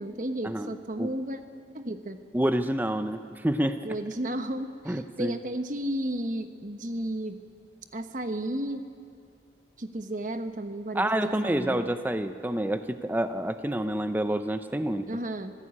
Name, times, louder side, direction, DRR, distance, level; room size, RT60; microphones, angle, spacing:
voice 1, 0.0-1.4 1.7-2.2 3.8-7.4 7.9-8.8 9.8-11.9 15.1-15.5, right 1 dB, 45° right, 8 dB, 1.2 m, -33 dB
voice 2, 2.3-3.8 4.9-5.4 10.9-15.0, right 1 dB, 10° right, 9 dB, 0.5 m, -28 dB
25.5 x 15.5 x 8.5 m, 2.4 s
head